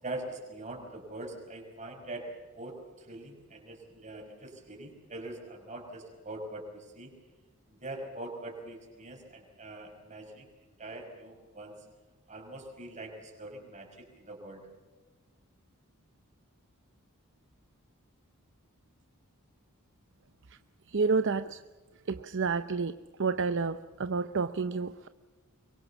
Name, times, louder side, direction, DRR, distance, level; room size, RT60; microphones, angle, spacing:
voice 1, 0.0-7.1 7.7-11.8 12.3-14.6, right 2 dB, 35° right, 3 dB, 5.7 m, -43 dB
voice 2, 20.9-21.6 22.1-25.1, right 4 dB, 55° right, 11 dB, 0.7 m, -30 dB
24.5 x 22.5 x 7.2 m, 1.3 s
head